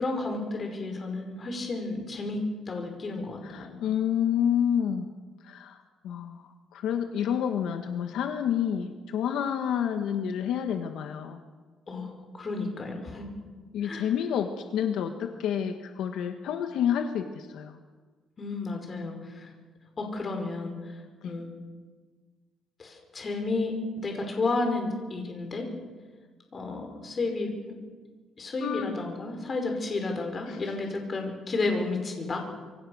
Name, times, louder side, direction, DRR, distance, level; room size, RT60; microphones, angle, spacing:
voice 1, 0.0-2.4 2.7-3.8 11.9-13.3 13.8-14.1 18.4-19.5 20.0-21.5 22.8-25.7 26.5-27.7 28.4-32.4, left 3 dB, 30° left, 3 dB, 5.3 m, -32 dB
voice 2, 3.4-5.1 5.4-5.8 6.0-6.4 6.7-11.4 13.7-17.8 21.2-21.3 28.6-28.9 30.5-30.6, left 9 dB, 75° left, 6 dB, 1.6 m, -29 dB
26.5 x 23.5 x 6.5 m, 1.4 s
cardioid pair, 135°, 0 cm